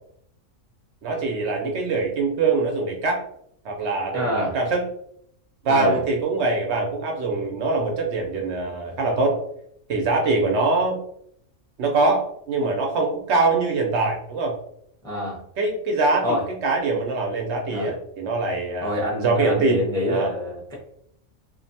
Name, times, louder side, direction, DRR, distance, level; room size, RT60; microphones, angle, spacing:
voice 1, 1.0-3.2 3.6-4.9 5.6-9.4 9.9-11.0 11.8-14.6 15.6-16.4 16.6-20.3, right 3 dB, 70° right, 1 dB, 0.8 m, -23 dB
voice 2, 4.1-4.6 5.7-6.0 15.0-15.4 16.2-16.4 17.7-17.9 18.8-20.7, left 1 dB, 5° left, -3 dB, 0.5 m, -26 dB
2.6 x 2.1 x 2.6 m, 0.69 s
omnidirectional pair, 1.3 m